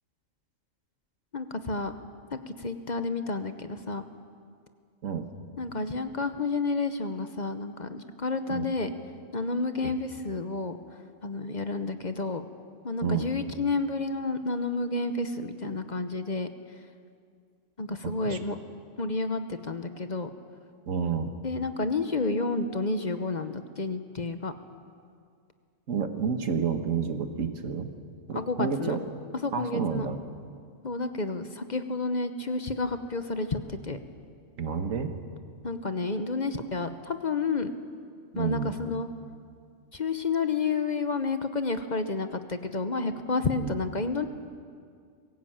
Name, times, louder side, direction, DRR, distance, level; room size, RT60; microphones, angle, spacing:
voice 1, 1.3-1.9 2.3-4.0 5.6-8.9 9.3-10.8 11.2-12.4 12.8-16.5 17.8-18.6 19.0-20.3 21.4-24.5 28.3-29.0 29.4-30.1 30.8-34.0 35.6-37.7 38.3-39.1 39.9-44.3, left 3 dB, 40° left, 9 dB, 1.0 m, -30 dB
voice 2, 13.0-13.3 18.0-18.4 20.9-21.3 25.9-27.9 28.3-29.0 29.5-30.2 34.6-35.1 38.3-38.7 43.6-43.7, right 6 dB, 90° right, 7 dB, 1.7 m, -30 dB
21.5 x 17.0 x 8.8 m, 2.2 s
omnidirectional pair, 1.3 m